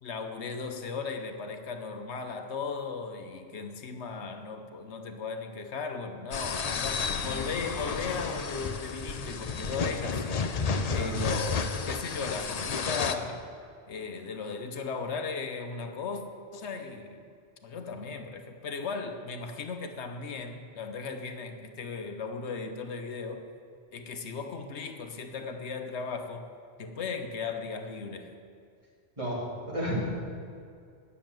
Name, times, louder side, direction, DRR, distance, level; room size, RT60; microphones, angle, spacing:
voice 1, 0.0-10.4 10.9-11.6 11.9-13.5 13.9-16.2 16.5-17.2 17.6-23.5 23.9-26.5 26.8-28.3, left 4 dB, 75° left, 6 dB, 1.1 m, -36 dB
sound 1, 6.3-13.1, left 5 dB, 45° left, 0.6 m, -32 dB
voice 2, 10.9-11.2 29.2-29.9, equal, 30° right, -7 dB, 3.3 m, -33 dB
9.9 x 7.0 x 8.9 m, 2.3 s
omnidirectional pair, 1.2 m